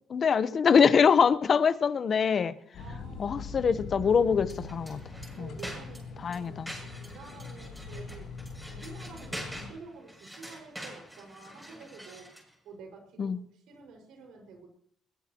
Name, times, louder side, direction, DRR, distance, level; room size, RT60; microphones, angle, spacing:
voice 1, 0.1-2.6 3.2-5.0 5.4-5.5 6.2-6.7 13.2-13.4, left 6 dB, 40° left, 1.0 m, -24 dB
sound 1, 2.7-9.7, left 3 dB, 65° left, 6.9 m, -42 dB
voice 2, 2.8-3.3 3.6-3.7 5.4-12.3 12.6-14.7, right 4 dB, 80° right, 5.7 m, -49 dB
sound 2, 4.4-12.5, equal, 5° right, 7.5 m, -45 dB
22.0 x 21.0 x 3.1 m
cardioid pair, 130°, 0 cm